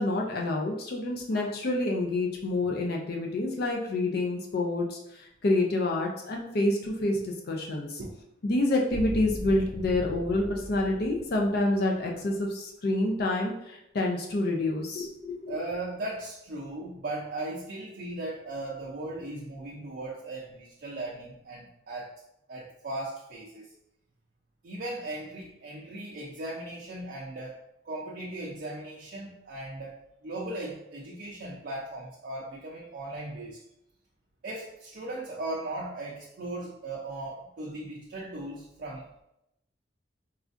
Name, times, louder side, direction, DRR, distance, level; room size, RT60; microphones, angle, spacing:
voice 1, 0.0-8.0 8.4-15.6, left 2 dB, 55° left, 0 dB, 0.5 m, -28 dB
sound 1, 8.9-12.1, equal, 70° left, 1.1 m, -39 dB
voice 2, 15.5-22.2 22.5-23.7 24.6-30.0 30.2-33.6 34.4-39.2, right 2 dB, 55° right, -4 dB, 0.5 m, -38 dB
4.2 x 2.4 x 2.5 m, 0.81 s
head